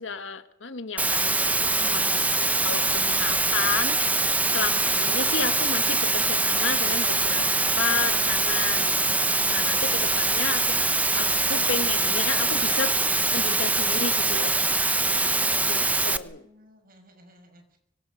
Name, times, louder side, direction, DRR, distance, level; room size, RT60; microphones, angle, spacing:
voice 1, 0.0-1.4 1.8-4.0 4.5-7.5 7.8-8.9 9.5-10.6 11.1-12.9 13.3-14.5 15.7-16.5, left 5 dB, 75° left, 10 dB, 1.6 m, -32 dB
Water, 1.0-16.2, right 3 dB, 10° right, 0.9 m, -23 dB
voice 2, 15.9-17.8, equal, 50° right, 5 dB, 6.3 m, -55 dB
25.0 x 24.0 x 6.5 m, 0.83 s
head